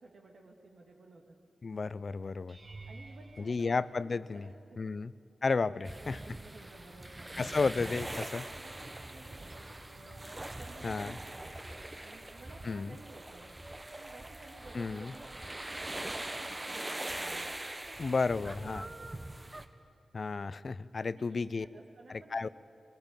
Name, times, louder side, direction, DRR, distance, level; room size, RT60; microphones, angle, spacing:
voice 1, 0.0-1.4 2.9-3.7 4.0-5.0 5.7-7.3 8.5-10.3 10.6-11.6 12.0-13.5 14.0-17.4 17.9-19.1 21.0-22.5, right 2 dB, 70° right, 1 dB, 2.7 m, -54 dB
voice 2, 1.6-2.6 3.4-4.5 4.8-5.1 5.4-6.2 7.4-8.5 10.8-11.2 12.6-13.0 14.7-15.1 18.0-18.8 20.1-21.7 22.1-22.5, left 4 dB, 55° left, 17 dB, 0.5 m, -32 dB
sound 1, 2.5-4.8 5.5-5.9 6.3-6.4 10.8-10.9, right 2 dB, 45° right, 1.7 m, -52 dB
sound 2, 5.8-19.7, right 1 dB, 30° right, 1.3 m, -42 dB
20.5 x 16.0 x 9.1 m, 2.4 s
supercardioid pair, 40°, 0 cm